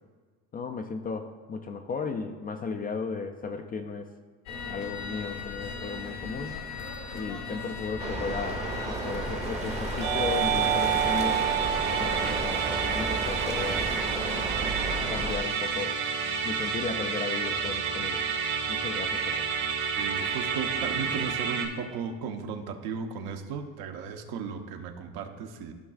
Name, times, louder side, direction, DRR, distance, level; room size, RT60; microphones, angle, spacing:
voice 1, 0.5-4.1 4.7-6.6 7.1-11.4 11.9-13.9 14.1-14.5 15.1-16.0 16.4-18.2 18.7-19.4, left 5 dB, 25° left, 5 dB, 0.3 m, -35 dB
sound 1, 4.5-12.4, left 5 dB, 75° left, 1.6 m, -38 dB
sound 2, 8.0-15.4, right 2 dB, 15° right, 0.8 m, -33 dB
Musical instrument, 10.0-21.7, right 7 dB, 90° right, 2.2 m, -29 dB
voice 2, 19.9-25.7, right 6 dB, 65° right, 5 dB, 1.0 m, -35 dB
14.5 x 6.0 x 2.4 m, 1.5 s
cardioid pair, 130°, 39 cm